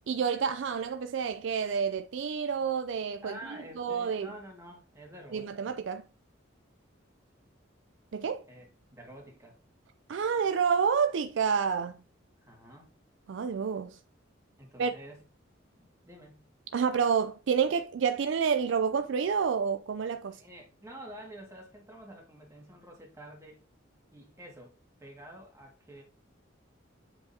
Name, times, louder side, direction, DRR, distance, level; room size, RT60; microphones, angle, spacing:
voice 1, 0.1-3.3 3.8-4.3 5.3-6.0 8.1-8.4 10.1-12.0 13.3-14.0 14.8-14.9 16.7-20.4, right 6 dB, 65° right, 0.4 m, -29 dB
voice 2, 3.2-5.7 8.5-9.6 12.4-12.9 14.6-15.2 15.8-16.5 20.3-23.6 24.1-24.7 25.0-26.0, right 1 dB, 15° right, 1.9 m, -49 dB
7.6 x 4.8 x 2.7 m
head